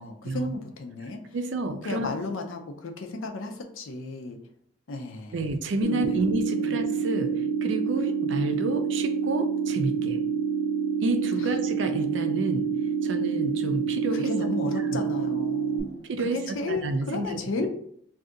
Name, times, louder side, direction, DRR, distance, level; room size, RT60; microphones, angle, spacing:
voice 1, 0.0-1.2 1.8-4.4 4.9-5.5 5.9-6.2 6.6-6.8 14.1-17.7, left 3 dB, 70° left, 4 dB, 0.5 m, -34 dB
voice 2, 1.3-2.1 5.3-7.3 7.6-10.2 11.0-12.7 13.0-14.3 14.9-15.0 16.1-17.7, right 2 dB, 60° right, 7 dB, 0.4 m, -29 dB
sound 1, 5.8-15.8, right 6 dB, 90° left, 0.8 m, -27 dB
2.6 x 2.4 x 3.7 m, 0.67 s
head